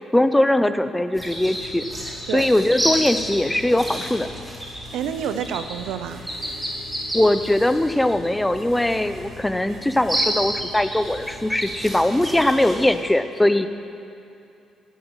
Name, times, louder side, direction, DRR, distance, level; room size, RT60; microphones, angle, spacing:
voice 1, 0.1-1.9 2.3-4.3 7.1-13.7, left 1 dB, 10° left, 10 dB, 0.6 m, -20 dB
sound 1, 1.1-12.8, equal, 10° right, 2.7 m, -31 dB
sound 2, 3.6-13.1, right 1 dB, 45° right, 2.2 m, -47 dB
voice 2, 4.9-6.2, right 8 dB, 90° right, 10 dB, 0.5 m, -28 dB
11.0 x 7.8 x 7.9 m, 2.6 s
cardioid pair, 90°, 0 cm